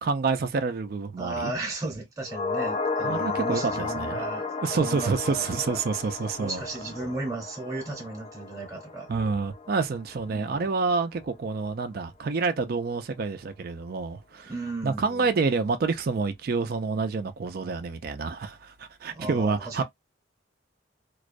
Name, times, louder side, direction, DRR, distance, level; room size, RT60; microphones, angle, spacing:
voice 1, 0.0-1.5 3.0-4.2 4.6-6.6 9.1-14.5 14.8-19.8, right 4 dB, 50° right, 0.4 m, -28 dB
voice 2, 1.2-4.5 4.8-5.8 6.4-9.1 10.3-10.7 14.4-15.3 19.1-19.8, right 2 dB, 20° right, 0.8 m, -35 dB
sound 1, 2.3-10.7 11.0-11.1, left 4 dB, 35° left, 0.3 m, -33 dB
2.3 x 2.1 x 2.5 m
head